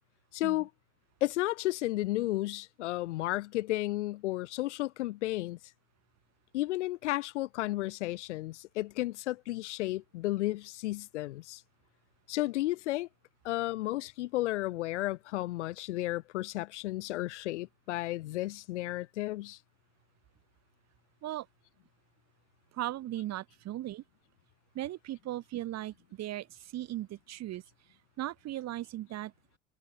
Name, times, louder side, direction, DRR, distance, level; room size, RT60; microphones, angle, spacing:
voice 1, 0.3-0.7 1.2-5.6 6.5-11.6 12.3-13.1 13.4-19.6, left 17 dB, 70° left, 4.1 m, -33 dB
voice 2, 22.7-24.0 24.7-27.6 28.2-29.3, right 14 dB, 45° right, 2.5 m, -37 dB
figure-of-eight pair, 70°, 37 cm